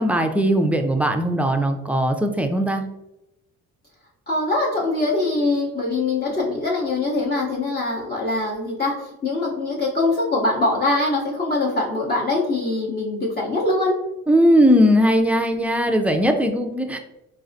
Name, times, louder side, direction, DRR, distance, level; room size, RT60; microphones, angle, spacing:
voice 1, 0.0-2.8 14.3-17.0, equal, 5° right, 5 dB, 0.3 m, -19 dB
voice 2, 4.3-14.0, left 2 dB, 30° left, -5 dB, 0.7 m, -23 dB
4.0 x 2.4 x 2.6 m, 0.91 s
cardioid pair, 90°, 30 cm